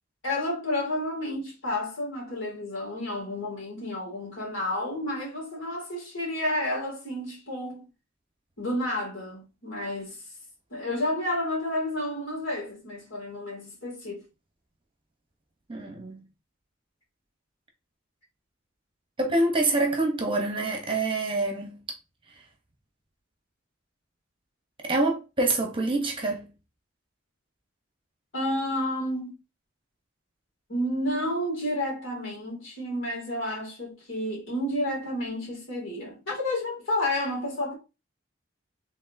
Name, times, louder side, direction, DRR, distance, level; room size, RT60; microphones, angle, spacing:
voice 1, 0.2-7.9 8.6-10.2 10.7-14.3 28.3-29.4 30.7-37.7, left 1 dB, 70° left, 2.5 m, -30 dB
voice 2, 15.7-16.2 19.2-21.8 24.8-26.5, right 2 dB, 25° right, 0.9 m, -26 dB
4.5 x 3.6 x 2.7 m
head